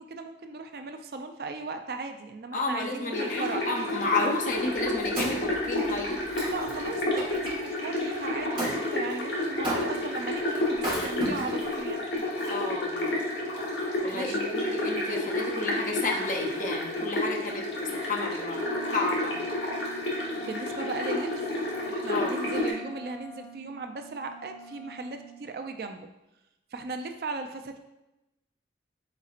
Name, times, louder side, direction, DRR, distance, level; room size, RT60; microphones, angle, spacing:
voice 1, 0.0-3.7 6.4-12.1 14.1-14.5 20.4-21.5 21.9-26.1 26.7-27.8, right 3 dB, 55° right, 6 dB, 0.3 m, -37 dB
voice 2, 2.5-6.3 12.5-13.1 14.0-18.6 18.9-19.3 22.1-22.4, left 2 dB, 45° left, 1 dB, 0.5 m, -31 dB
sound 1, 3.1-22.7, left 1 dB, 80° left, 1.0 m, -30 dB
Wood, 4.6-7.6 8.6-8.8 9.6-10.2 10.7-11.7 12.4-12.5, right 1 dB, 25° right, 1.4 m, -34 dB
Wind instrument woodwind instrument, 18.5-25.4, right 2 dB, ahead, 0.8 m, -46 dB
4.3 x 4.1 x 2.4 m, 0.95 s
head